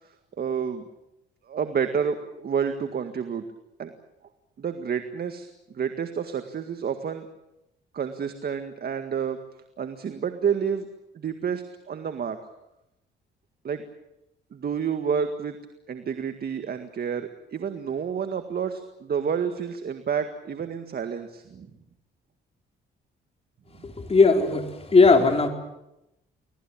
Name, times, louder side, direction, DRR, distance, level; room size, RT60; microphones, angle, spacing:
voice 1, 0.4-0.8 1.5-3.4 3.8-3.9 4.6-5.5 5.7-7.3 7.9-9.4 9.8-10.9 11.1-12.4 13.6-13.9 14.5-15.6 15.9-21.7, right 7 dB, 50° right, 8 dB, 1.9 m, -29 dB
voice 2, 23.8-25.5, left 4 dB, 30° left, 4 dB, 4.3 m, -18 dB
25.5 x 18.5 x 8.7 m, 0.88 s
cardioid pair, 90°, 20 cm